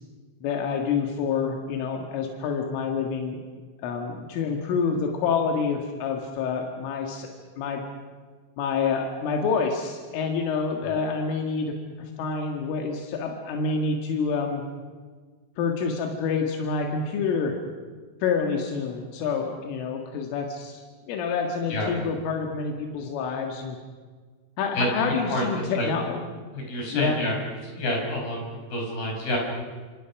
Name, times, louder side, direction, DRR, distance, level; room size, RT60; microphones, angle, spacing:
voice 1, 0.4-3.4 3.8-7.3 7.6-7.8 8.6-14.6 15.6-17.5 18.2-23.8 24.6-26.2 26.9-27.2, left 5 dB, 85° left, 2 dB, 4.5 m, -27 dB
voice 2, 21.7-22.1 24.7-24.9 25.3-25.9 26.5-27.4 27.6-29.4, left 1 dB, 50° left, 1 dB, 7.4 m, -28 dB
28.0 x 27.0 x 6.0 m, 1.5 s
omnidirectional pair, 5.5 m